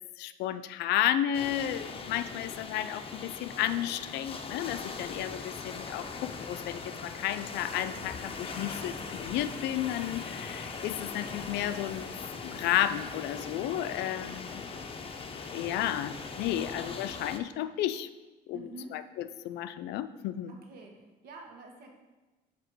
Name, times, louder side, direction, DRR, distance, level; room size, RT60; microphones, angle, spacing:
voice 1, 0.2-12.1 12.4-14.6 15.5-18.1 18.5-18.6 18.9-19.0 19.4-20.5, left 12 dB, 80° left, 12 dB, 0.4 m, -32 dB
sound 1, 1.3-17.4, left 4 dB, 35° left, 0.6 m, -40 dB
voice 2, 18.5-18.9 20.5-21.9, right 3 dB, 65° right, 2 dB, 1.2 m, -47 dB
7.6 x 2.9 x 6.0 m, 1.2 s
cardioid pair, 110°, 17 cm